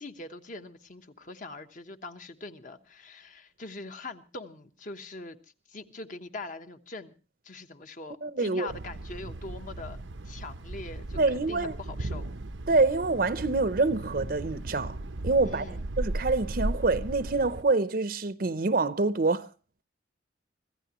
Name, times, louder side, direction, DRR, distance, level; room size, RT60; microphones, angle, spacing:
voice 1, 0.0-5.4 5.7-7.1 7.4-12.3 15.4-15.8, left 3 dB, 45° left, 1.2 m, -42 dB
voice 2, 8.2-8.7 11.2-11.8 12.7-15.0 15.2-19.5, right 3 dB, 50° right, 0.7 m, -26 dB
Thunder, 8.7-17.6, right 2 dB, 85° right, 0.8 m, -36 dB
25.5 x 15.0 x 3.0 m
head